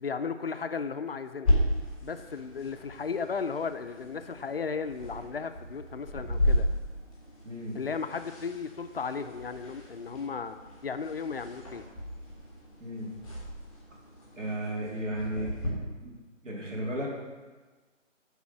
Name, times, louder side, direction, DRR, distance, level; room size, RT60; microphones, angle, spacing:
voice 1, 0.0-1.6 2.0-6.7 7.7-10.6 10.8-11.8, left 5 dB, 50° left, 9 dB, 0.5 m, -35 dB
sound 1, 1.4-15.7, left 1 dB, 5° right, 0.8 m, -34 dB
voice 2, 7.4-7.8 12.8-13.1 14.4-16.1 16.4-17.1, right 1 dB, 70° right, -4 dB, 2.8 m, -34 dB
9.6 x 3.7 x 6.0 m, 1.3 s
figure-of-eight pair, 165°, 38 cm